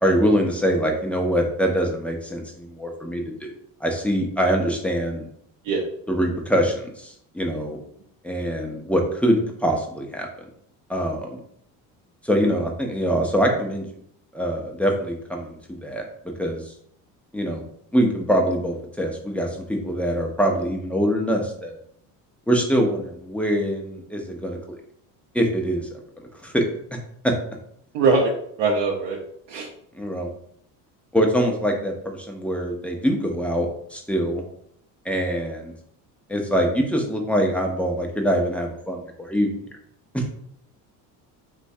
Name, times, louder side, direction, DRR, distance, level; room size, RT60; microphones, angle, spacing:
voice 1, 0.0-3.2 3.8-5.3 6.1-7.8 8.2-10.3 10.9-11.4 12.2-13.9 14.3-16.0 16.4-16.7 17.3-17.7 17.9-21.7 22.5-24.6 25.3-26.0 26.4-26.6 27.2-27.3 30.0-30.3 31.1-34.4 35.1-35.7 36.3-39.6 40.1-40.2, equal, 5° left, 0 dB, 0.4 m, -23 dB
voice 2, 27.9-28.3 28.6-29.2 29.5-29.7, right 4 dB, 75° right, -1 dB, 0.6 m, -21 dB
3.0 x 2.3 x 2.6 m, 0.67 s
supercardioid pair, 75°, 47 cm